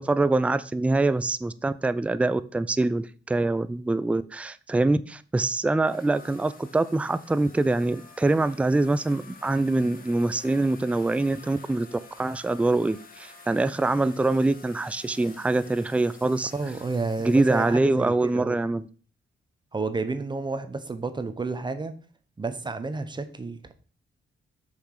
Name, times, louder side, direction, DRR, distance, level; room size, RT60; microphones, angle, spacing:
voice 1, 0.0-16.5 17.2-18.9, right 2 dB, 5° right, 14 dB, 0.4 m, -24 dB
sound 1, 5.8-17.8, left 4 dB, 45° left, 1.5 m, -50 dB
voice 2, 16.5-18.6 19.7-21.9 22.4-23.7, right 3 dB, 25° right, 10 dB, 0.9 m, -31 dB
7.0 x 5.8 x 4.9 m, 0.41 s
cardioid pair, 120°, 20 cm